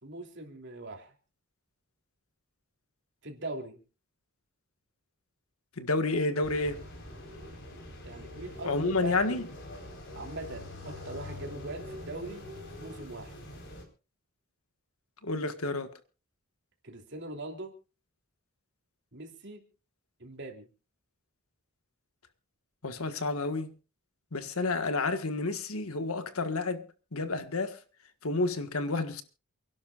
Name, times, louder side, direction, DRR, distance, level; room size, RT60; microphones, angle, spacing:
voice 1, 0.0-1.1 3.2-3.8 8.0-9.4 10.1-12.5 12.8-13.4 16.8-17.7 19.1-19.6 20.2-20.7, right 2 dB, 55° right, 3.1 m, -41 dB
voice 2, 5.8-6.8 8.6-9.4 15.2-15.9 22.8-23.7 24.3-26.8 27.1-27.8 28.2-29.2, left 3 dB, 85° left, 1.6 m, -30 dB
sound 1, 6.4-13.8, left 1 dB, 55° left, 4.4 m, -44 dB
28.5 x 11.5 x 2.5 m
head